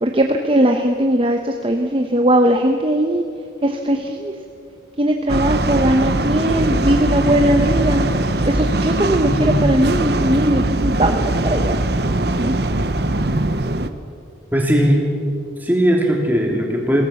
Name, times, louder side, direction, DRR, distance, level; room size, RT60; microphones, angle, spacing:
voice 1, 0.0-3.2 3.6-4.3 5.0-8.1 8.5-11.8 12.4-12.5, right 1 dB, 30° right, 3 dB, 1.0 m, -19 dB
sound 1, 5.3-13.9, right 2 dB, 55° right, 1.0 m, -20 dB
voice 2, 9.2-9.6 14.5-15.0 15.6-17.0, equal, 10° right, -1 dB, 3.3 m, -18 dB
22.0 x 18.0 x 7.2 m, 2.4 s
head